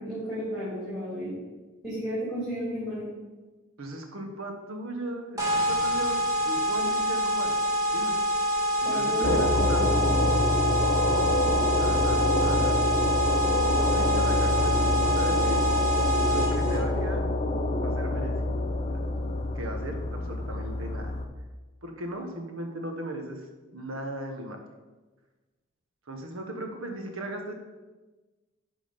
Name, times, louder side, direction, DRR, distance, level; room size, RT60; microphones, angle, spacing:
voice 1, 0.0-1.3 1.8-3.0 8.8-10.0, equal, ahead, -10 dB, 2.9 m, -32 dB
voice 2, 3.8-7.5 7.9-8.1 8.8-9.9 11.8-12.8 13.7-15.6 16.3-17.3 17.8-18.3 19.5-21.1 21.8-23.4 23.7-24.6 26.1-27.5, right 1 dB, 70° right, 3 dB, 1.2 m, -37 dB
sound 1, 5.4-16.8, equal, 15° right, 1.6 m, -26 dB
sound 2, 9.2-21.3, left 1 dB, 35° left, 0.5 m, -26 dB
10.5 x 3.8 x 5.2 m, 1.2 s
head